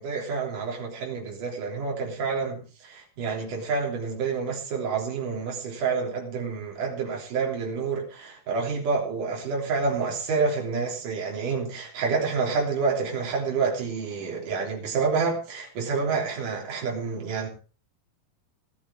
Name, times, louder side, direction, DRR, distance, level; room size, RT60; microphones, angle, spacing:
voice 1, 0.0-17.5, right 4 dB, 55° right, 4.8 m, -28 dB
17.0 x 13.0 x 3.6 m
omnidirectional pair, 4.4 m